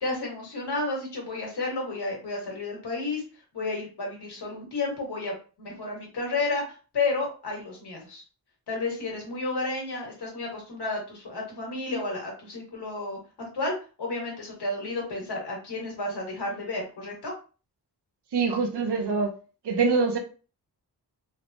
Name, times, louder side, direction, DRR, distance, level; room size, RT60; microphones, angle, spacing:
voice 1, 0.0-3.2 3.5-8.2 8.7-17.3, left 3 dB, 80° left, -1 dB, 1.3 m, -32 dB
voice 2, 18.3-19.3 19.6-20.2, right 4 dB, 90° right, 5 dB, 0.6 m, -24 dB
3.2 x 2.0 x 2.6 m, 0.36 s
wide cardioid pair, 120°, 39 cm